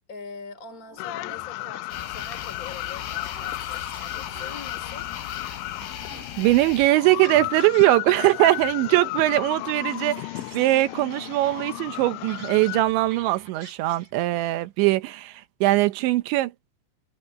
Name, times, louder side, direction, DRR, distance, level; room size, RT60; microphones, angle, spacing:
voice 1, 0.1-5.1, left 4 dB, 25° left, 2.4 m, -43 dB
sound 1, 0.7-2.4 2.9-5.4 6.0-6.4 7.0-8.3 8.6-9.2 9.5-14.7, right 4 dB, 45° right, 7.0 m, -49 dB
sound 2, 1.0-12.8, left 22 dB, 85° left, 2.6 m, -34 dB
sound 3, 1.9-6.9, left 8 dB, 60° left, 3.8 m, -38 dB
voice 2, 6.4-10.3 10.5-16.5, right 17 dB, 80° right, 3.1 m, -21 dB
omnidirectional pair, 5.5 m